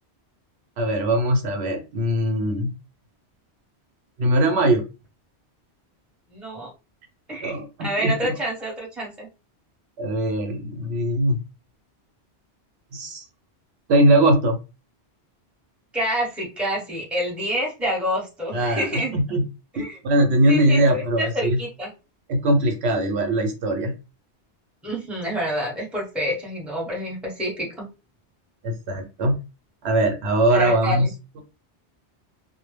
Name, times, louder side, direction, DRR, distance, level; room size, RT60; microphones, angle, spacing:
voice 1, 0.8-2.7 4.2-4.8 7.4-8.1 10.0-11.4 12.9-13.2 13.9-14.6 18.5-19.4 19.8-21.6 22.3-23.9 28.6-29.4 29.8-31.1, right 1 dB, 70° right, 5 dB, 0.8 m, -21 dB
voice 2, 6.3-6.7 7.3-9.3 15.9-19.1 19.8-20.0 20.5-21.9 24.8-27.9 30.5-31.1, equal, ahead, -3 dB, 0.8 m, -28 dB
2.1 x 2.0 x 3.2 m, 0.29 s
omnidirectional pair, 1.1 m